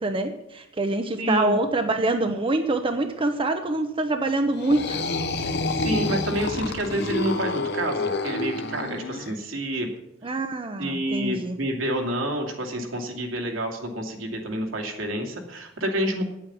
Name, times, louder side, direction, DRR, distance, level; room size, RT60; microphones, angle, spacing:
voice 1, 0.0-5.0 10.2-11.6, right 2 dB, 25° right, 6 dB, 0.7 m, -25 dB
voice 2, 1.2-1.6 5.4-9.9 10.2-10.3 10.8-16.2, right 1 dB, 80° right, 2 dB, 2.7 m, -28 dB
sound 1, 4.5-9.3, left 2 dB, 60° left, 1.0 m, -28 dB
9.5 x 8.6 x 9.3 m, 0.89 s
head